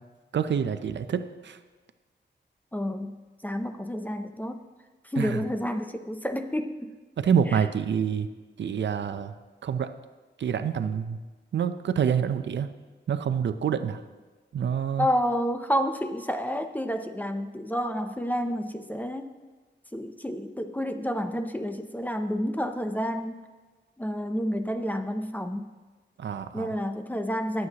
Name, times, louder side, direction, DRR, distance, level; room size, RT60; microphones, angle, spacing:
voice 1, 0.3-1.6 5.2-5.4 7.2-8.3 8.6-9.3 9.6-9.9 10.4-11.2 11.5-12.7 13.1-14.0 14.5-15.1 26.2-26.8, right 7 dB, 70° right, 10 dB, 0.5 m, -27 dB
voice 2, 2.7-3.1 3.4-4.6 5.1-6.9 15.0-19.3 19.9-23.4 24.0-25.7 26.5-27.7, equal, 10° left, 7 dB, 0.5 m, -29 dB
19.0 x 7.9 x 2.9 m, 1.3 s
wide cardioid pair, 155°, 19 cm